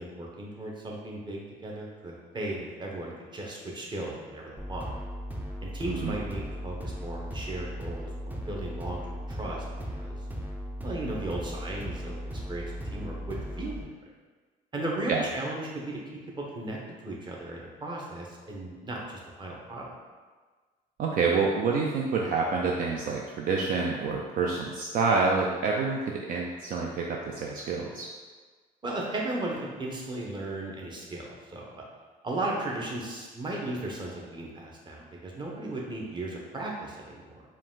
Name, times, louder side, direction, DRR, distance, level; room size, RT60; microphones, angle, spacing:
voice 1, 0.0-4.9 5.6-9.6 9.9-10.2 10.8-12.2 12.5-13.8 14.7-16.0 16.4-19.9 28.8-31.8 32.2-37.4, right 2 dB, 25° right, -2 dB, 1.0 m, -36 dB
sound 1, 4.6-13.8, equal, 10° right, 0.5 m, -37 dB
voice 2, 5.8-6.2 15.1-15.2 21.0-28.1, right 4 dB, 55° right, -1 dB, 0.5 m, -27 dB
4.8 x 2.5 x 3.7 m, 1.4 s
cardioid pair, 110°, 17 cm